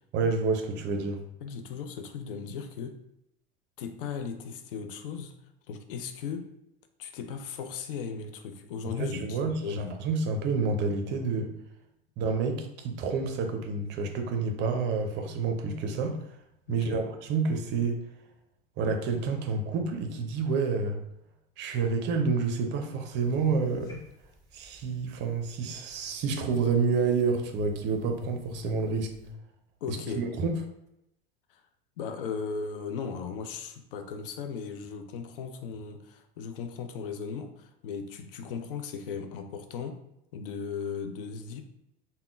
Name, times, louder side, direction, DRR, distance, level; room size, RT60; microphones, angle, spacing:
voice 1, 0.1-1.2 9.0-11.5 12.2-16.2 16.7-18.0 18.8-21.0 21.6-24.0 24.5-29.1 29.9-30.6, right 4 dB, 40° right, 5 dB, 0.5 m, -29 dB
voice 2, 1.4-3.0 3.8-5.3 5.7-6.5 7.0-10.0 16.7-17.0 29.8-30.2 31.5-31.6 32.0-40.0 40.3-41.6, left 6 dB, 65° left, 7 dB, 0.5 m, -37 dB
sound 1, 23.2-29.3, left 8 dB, 15° left, 1.0 m, -46 dB
3.5 x 2.1 x 2.4 m, 0.82 s
figure-of-eight pair, 75°, 29 cm